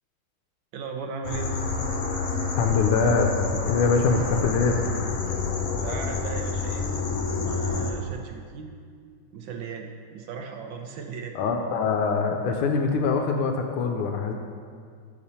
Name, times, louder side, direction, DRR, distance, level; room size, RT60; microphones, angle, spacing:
voice 1, 0.7-1.6 5.7-6.9 7.3-8.7 9.3-11.4, right 5 dB, 75° right, 4 dB, 1.2 m, -37 dB
sound 1, 1.2-7.9, left 4 dB, 65° left, 0.7 m, -28 dB
voice 2, 2.6-3.4 3.7-4.8 11.3-14.3, left 5 dB, 85° left, 3 dB, 1.5 m, -23 dB
7.4 x 6.8 x 4.2 m, 2.1 s
omnidirectional pair, 2.4 m